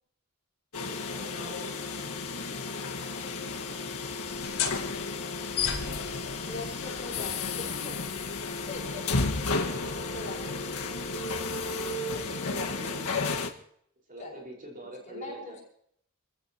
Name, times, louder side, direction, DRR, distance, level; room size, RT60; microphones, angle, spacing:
sound 1, 0.7-13.5, left 3 dB, 90° left, 1.8 m, -33 dB
voice 1, 1.1-1.8 10.2-10.5 12.0-13.0 14.1-15.6, right 1 dB, 40° right, 0 dB, 5.0 m, -45 dB
sound 2, 4.3-11.5, left 8 dB, 65° left, 4.6 m, -38 dB
voice 2, 6.5-8.2 8.7-9.0 10.1-10.9 12.3-13.1 14.2-14.4 15.1-15.6, left 2 dB, 35° left, -1 dB, 6.9 m, -42 dB
29.0 x 15.5 x 3.0 m, 0.67 s
head